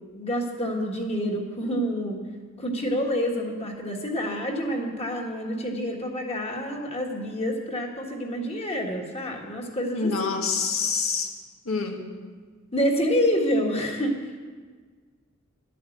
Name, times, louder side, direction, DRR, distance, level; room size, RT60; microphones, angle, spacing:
voice 1, 0.1-2.2 2.6-10.4 12.7-14.1, equal, 30° left, 1 dB, 1.6 m, -27 dB
voice 2, 9.9-11.3 11.7-12.0, left 5 dB, 85° left, 3 dB, 1.7 m, -26 dB
12.0 x 8.5 x 7.9 m, 1.5 s
head